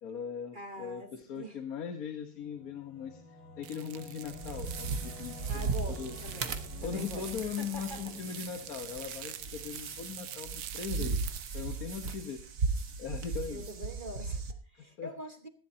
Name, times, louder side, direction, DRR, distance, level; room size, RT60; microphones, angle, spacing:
voice 1, 0.0-6.2 6.8-11.2 11.5-12.4 13.0-13.6 14.7-15.1, left 7 dB, 50° left, 1.4 m, -40 dB
voice 2, 0.5-1.6 5.5-7.3 7.6-8.2 13.5-15.5, equal, 30° right, 1.3 m, -44 dB
Singing / Musical instrument, 2.3-11.4, left 2 dB, 85° left, 4.5 m, -51 dB
sound 1, 3.6-11.5, right 12 dB, 90° right, 1.7 m, -47 dB
sound 2, 4.2-14.5, right 4 dB, 45° right, 1.5 m, -37 dB
18.5 x 14.5 x 2.8 m
omnidirectional pair, 2.2 m